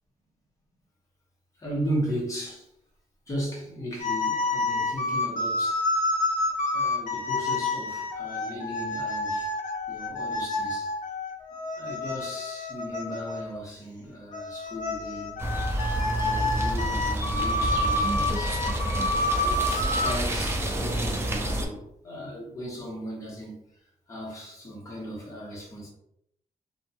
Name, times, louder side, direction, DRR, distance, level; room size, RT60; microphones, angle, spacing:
voice 1, 1.6-2.6 3.3-5.8 6.7-9.5 9.9-10.9 11.8-15.3 16.0-18.6 19.1-23.6 24.1-25.9, equal, 25° left, 0.9 m, -36 dB
sound 1, 4.0-13.6 14.3-20.1, left 2 dB, 70° left, 0.5 m, -29 dB
sound 2, 15.4-21.7, right 1 dB, 20° right, 0.3 m, -28 dB
2.5 x 2.2 x 2.7 m
wide cardioid pair, 160°, 14 cm